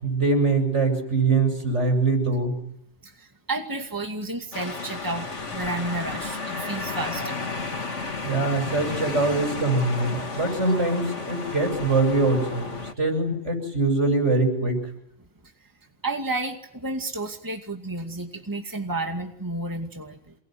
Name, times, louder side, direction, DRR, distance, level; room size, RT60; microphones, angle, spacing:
voice 1, 0.0-2.6 8.2-12.7 13.0-14.8, right 3 dB, 70° right, 4 dB, 8.4 m, -23 dB
voice 2, 3.0-7.4 16.0-20.4, right 2 dB, 15° right, 3 dB, 2.4 m, -31 dB
sound 1, 4.5-12.9, left 3 dB, 70° left, 2.6 m, -33 dB
28.0 x 20.5 x 9.5 m, 0.74 s
omnidirectional pair, 1.3 m